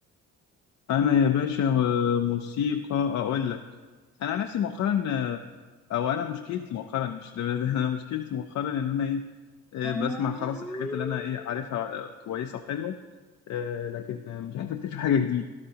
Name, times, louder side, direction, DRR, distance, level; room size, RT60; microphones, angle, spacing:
voice 1, 0.9-3.6 4.2-5.4 5.9-9.2 9.7-12.9 13.5-15.4, left 8 dB, 65° left, 5 dB, 0.6 m, -28 dB
sound 1, 9.8-11.8, left 1 dB, ahead, 0.5 m, -36 dB
13.0 x 11.5 x 2.9 m, 1.3 s
cardioid pair, 90°, 30 cm